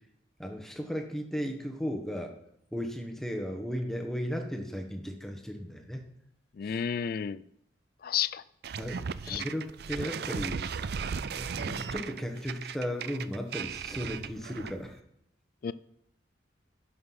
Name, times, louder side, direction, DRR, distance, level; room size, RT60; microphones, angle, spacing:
voice 1, 0.4-2.3 2.7-6.1 6.7-6.8 8.8-10.6 11.2-15.0, equal, ahead, 1.2 m, -35 dB
voice 2, 6.6-7.4 8.0-8.4 9.3-9.4 15.6-15.7, left 8 dB, 50° left, 0.3 m, -31 dB
sound 1, 8.6-14.9, right 6 dB, 55° right, 0.4 m, -36 dB
10.5 x 5.8 x 5.9 m
head